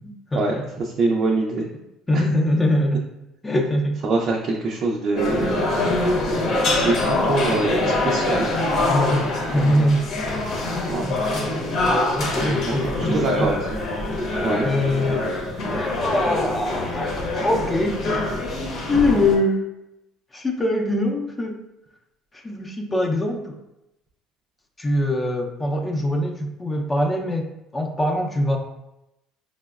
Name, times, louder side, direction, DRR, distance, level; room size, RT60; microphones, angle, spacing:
voice 1, 0.0-0.6 2.1-3.1 3.4-4.0 8.8-9.3 9.5-10.1 11.0-11.3 11.8-13.6 14.6-15.3 15.6-18.0 18.9-19.6 20.3-21.6 22.3-23.6 24.8-28.6, left 1 dB, 15° left, 2 dB, 0.5 m, -23 dB
voice 2, 1.0-1.7 2.1-2.2 4.0-5.7 6.8-8.5 10.9-11.1 11.4-11.6 12.6-13.6 14.4-14.7, right 3 dB, 50° right, -1 dB, 0.5 m, -24 dB
sound 1, 5.2-19.4, left 2 dB, 60° left, 0.8 m, -24 dB
4.8 x 2.0 x 2.3 m, 0.89 s
supercardioid pair, 105°, 0 cm